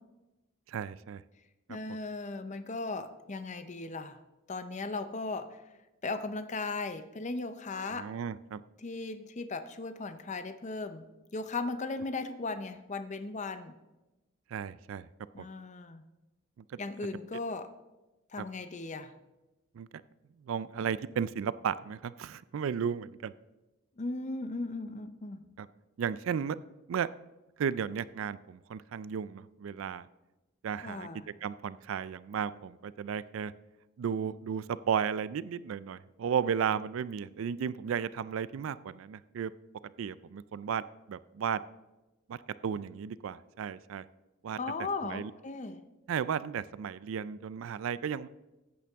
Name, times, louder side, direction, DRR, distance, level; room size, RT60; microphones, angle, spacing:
voice 1, 0.7-1.2 1.7-1.8 7.7-8.6 14.5-15.1 15.4-15.5 16.7-16.8 18.4-18.5 19.7-19.9 20.4-23.3 25.6-25.7 26.0-26.6 26.9-27.1 27.6-30.1 30.6-31.1 31.4-33.5 34.0-39.5 40.0-40.8 41.1-41.6 42.3-42.4 42.6-44.0 44.4-44.6 45.0-45.3 46.1-48.3, right 7 dB, 65° right, 17 dB, 0.3 m, -34 dB
voice 2, 1.7-4.2 4.5-5.5 6.0-8.1 8.8-11.1 11.3-13.7 15.3-16.0 16.8-17.7 18.3-19.1 24.0-25.4 30.8-31.2 44.6-45.8, left 3 dB, 35° left, 10 dB, 0.6 m, -37 dB
14.5 x 8.4 x 3.5 m, 1.1 s
head